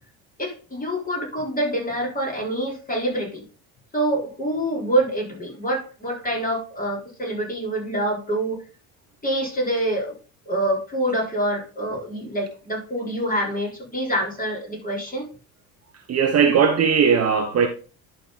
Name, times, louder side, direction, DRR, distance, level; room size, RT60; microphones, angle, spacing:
voice 1, 0.4-3.4 3.9-8.6 9.2-10.1 10.5-15.3, right 1 dB, 20° left, 4.0 m, -26 dB
voice 2, 16.1-17.7, right 6 dB, 35° right, 1.0 m, -18 dB
11.0 x 4.4 x 3.9 m
figure-of-eight pair, 60°, 46 cm